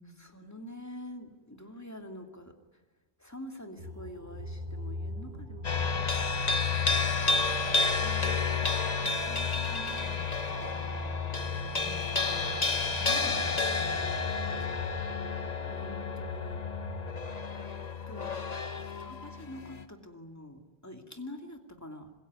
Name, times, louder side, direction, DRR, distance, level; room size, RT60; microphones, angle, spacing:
voice 1, 0.0-2.6 3.2-6.8 15.7-16.6 17.5-17.8 18.1-18.4 18.8-22.1, left 1 dB, 15° left, 4 dB, 2.6 m, -46 dB
sound 1, 3.8-17.2, left 3 dB, 45° right, 2.0 m, -40 dB
sound 2, 5.6-19.8, left 4 dB, 40° left, 1.4 m, -31 dB
voice 2, 7.9-11.2 11.7-14.6, right 1 dB, ahead, 2 dB, 7.3 m, -49 dB
26.0 x 21.5 x 9.6 m, 1.1 s
omnidirectional pair, 1.1 m